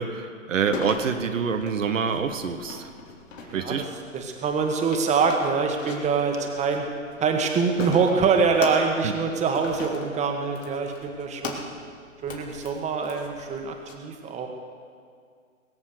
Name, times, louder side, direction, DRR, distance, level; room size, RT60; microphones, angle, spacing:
voice 1, 0.0-2.9 3.5-3.9 9.0-9.1, right 6 dB, 70° right, 7 dB, 1.2 m, -26 dB
sound 1, 0.7-13.9, left 3 dB, 70° left, 3.1 m, -40 dB
voice 2, 3.4-3.8 4.1-6.8 7.2-11.6 12.2-14.5, right 5 dB, 15° right, 3 dB, 1.7 m, -24 dB
22.0 x 7.4 x 6.7 m, 2.1 s
figure-of-eight pair, 120°, 40 cm